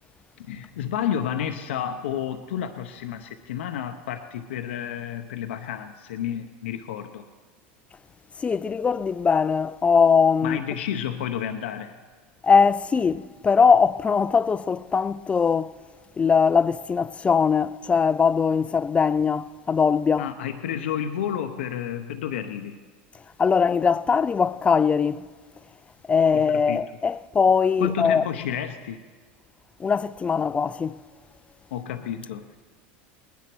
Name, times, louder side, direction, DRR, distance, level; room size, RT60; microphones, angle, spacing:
voice 1, 0.4-7.3 10.4-11.9 20.2-22.8 26.3-26.9 27.8-29.0 31.7-32.6, left 9 dB, 85° left, 0.8 m, -31 dB
voice 2, 8.4-10.6 12.4-15.7 16.2-20.3 23.4-25.3 26.1-28.2 29.8-31.0, left 6 dB, 20° left, 0.4 m, -21 dB
19.5 x 10.5 x 6.1 m
supercardioid pair, 110°, 6 cm